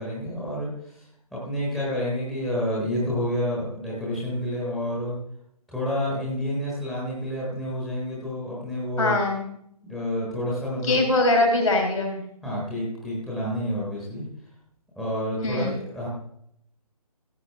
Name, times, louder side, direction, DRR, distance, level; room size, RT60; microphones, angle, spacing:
voice 1, 0.0-5.2 5.7-9.2 9.8-11.0 12.4-14.2 14.9-16.1, equal, ahead, -7 dB, 1.3 m, -29 dB
voice 2, 9.0-9.5 10.9-12.2 15.4-15.8, left 2 dB, 60° left, 1 dB, 3.5 m, -22 dB
15.5 x 8.2 x 3.3 m, 0.73 s
figure-of-eight pair, 150°, 20 cm